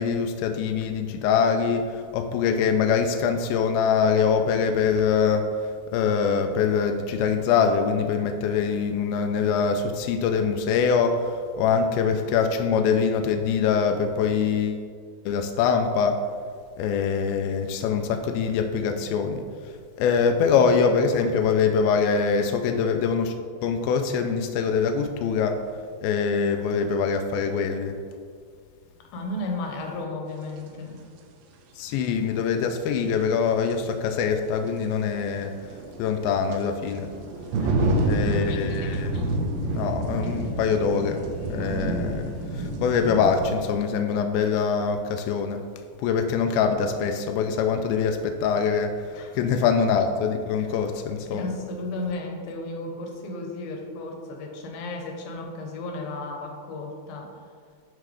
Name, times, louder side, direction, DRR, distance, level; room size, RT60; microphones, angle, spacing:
voice 1, 0.0-5.5 5.9-14.8 15.3-16.2 16.8-19.4 20.0-23.4 23.6-25.6 26.0-28.0 31.8-35.5 36.0-37.1 38.0-39.1 39.7-41.2 41.5-45.6 46.0-49.1 49.3-51.5, left 6 dB, 85° left, 6 dB, 2.1 m, -24 dB
voice 2, 29.1-31.0 37.5-38.6 49.1-49.3 50.6-50.7 51.3-57.4, left 2 dB, 70° left, 2 dB, 2.4 m, -34 dB
sound 1, 30.6-30.7 33.1-33.2 33.7-33.8 35.3-43.6, right 2 dB, 75° right, 2.3 m, -28 dB
12.0 x 4.6 x 3.3 m, 2.1 s
omnidirectional pair, 4.8 m